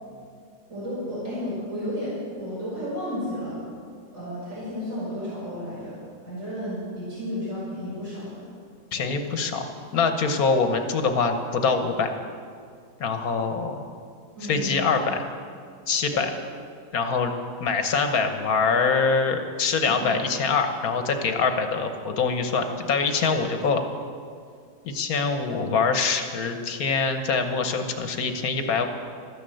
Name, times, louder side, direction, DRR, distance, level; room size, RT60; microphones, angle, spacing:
voice 1, 0.7-3.6 4.1-6.0 6.2-8.4 9.0-9.1 14.4-14.9 16.1-16.2 19.7-20.1, left 1 dB, 45° right, -9 dB, 5.5 m, -33 dB
voice 2, 8.9-9.6 9.9-12.1 13.0-13.8 14.4-15.2 15.9-16.3 16.9-17.3 17.6-23.8 24.8-28.9, left 5 dB, 60° left, 7 dB, 1.4 m, -24 dB
13.0 x 10.0 x 7.8 m, 2.2 s
omnidirectional pair, 1.9 m